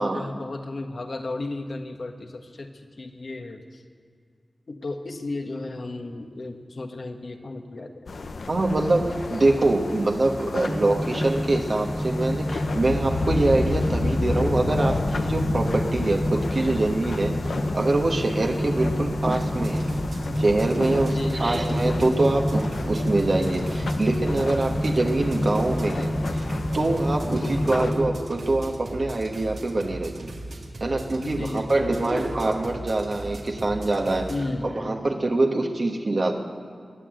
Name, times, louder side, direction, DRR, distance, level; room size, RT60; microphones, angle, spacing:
voice 1, 0.0-3.8 4.7-8.1 21.1-21.6 27.4-27.9 31.2-32.4 34.3-35.0, left 2 dB, 65° left, 5 dB, 1.5 m, -34 dB
sound 1, 8.1-27.9, left 3 dB, 80° left, 0.9 m, -31 dB
voice 2, 8.5-19.8 20.4-26.4 26.7-30.3 30.8-34.3 34.6-36.3, right 2 dB, 60° right, 1 dB, 1.4 m, -24 dB
sound 2, 10.7-28.2, equal, ahead, 0.5 m, -29 dB
sound 3, 19.4-34.4, right 2 dB, 85° right, 2.2 m, -38 dB
21.0 x 8.6 x 7.8 m, 2.1 s
cardioid pair, 40°, 0 cm